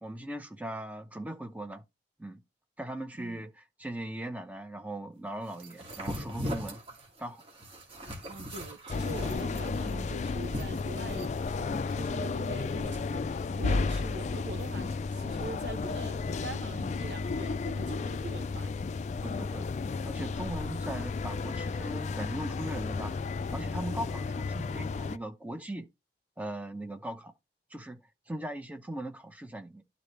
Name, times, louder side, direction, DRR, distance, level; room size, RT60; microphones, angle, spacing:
voice 1, 0.0-1.8 2.2-2.4 2.8-6.8 7.2-7.4 19.2-19.7 20.0-23.2 23.5-25.9 26.4-27.3 27.7-28.0 28.3-29.8, right 1 dB, 10° right, 0.8 m, -39 dB
sound 1, 5.6-11.4, equal, 30° right, 2.4 m, -39 dB
voice 2, 8.3-18.7, right 2 dB, 70° right, 0.9 m, -42 dB
sound 2, 8.9-25.2, left 4 dB, 40° left, 0.3 m, -33 dB
12.0 x 4.1 x 3.3 m
head